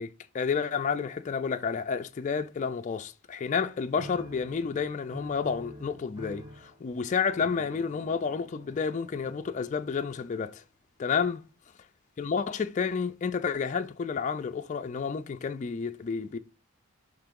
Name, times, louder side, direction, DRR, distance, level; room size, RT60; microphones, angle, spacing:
voice 1, 0.0-10.6 11.0-11.4 12.2-16.4, left 5 dB, 35° left, 0.3 m, -30 dB
sound 1, 4.0-10.4, equal, 25° right, 0.9 m, -48 dB
5.3 x 3.4 x 5.1 m
head